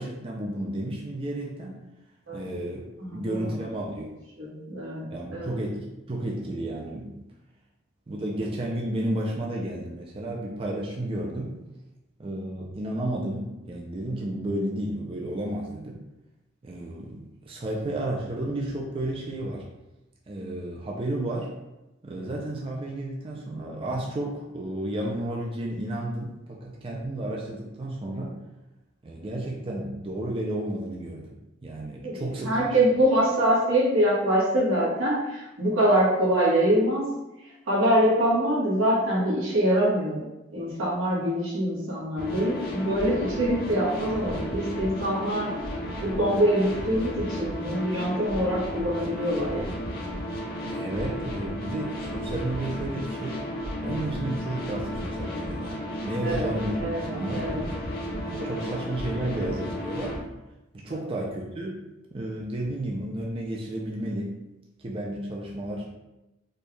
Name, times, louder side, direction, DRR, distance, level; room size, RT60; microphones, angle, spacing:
voice 1, 0.0-1.8 2.3-2.8 3.1-4.1 5.1-7.2 8.1-11.6 12.2-16.0 16.6-19.6 20.3-21.5 22.0-28.4 29.0-32.8 50.6-53.5 53.8-56.8 57.1-57.7 58.2-60.2 60.7-61.8 62.1-64.3 64.8-65.9, right 1 dB, 30° right, -2 dB, 0.4 m, -32 dB
voice 2, 4.4-5.5 32.0-37.0 37.7-40.2 40.5-45.5 46.0-49.7 56.2-56.5 56.8-57.6 58.4-58.5 60.9-61.0, right 1 dB, 90° right, -6 dB, 1.4 m, -24 dB
sound 1, 42.2-60.2, equal, 50° left, 0.7 m, -33 dB
4.3 x 2.3 x 3.2 m, 0.98 s
head